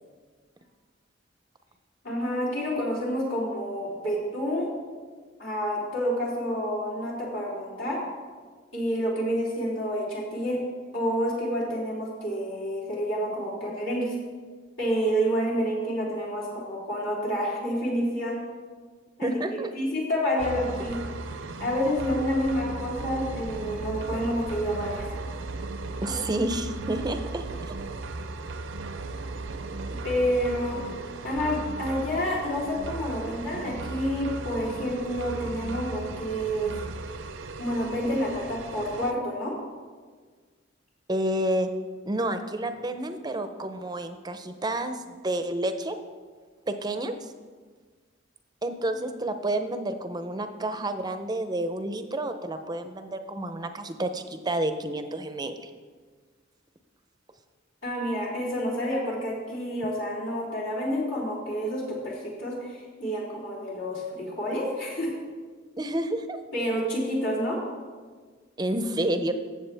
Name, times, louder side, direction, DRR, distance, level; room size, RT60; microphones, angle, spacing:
voice 1, 2.0-4.7 5.4-8.0 8.7-10.6 10.9-14.1 14.8-18.4 19.2-19.4 19.7-21.0 21.6-25.0 30.0-30.8 31.2-36.7 37.6-39.5 57.8-65.1 66.5-67.6, equal, 75° left, -5 dB, 3.4 m, -28 dB
voice 2, 19.2-19.7 26.0-27.4 41.1-41.7 42.1-46.0 46.7-47.3 48.6-55.7 65.8-66.4 68.6-69.3, right 1 dB, 20° right, 9 dB, 0.6 m, -29 dB
sound 1, 20.4-39.1, right 3 dB, 70° right, 0.6 m, -36 dB
14.5 x 7.7 x 3.4 m, 1.5 s
head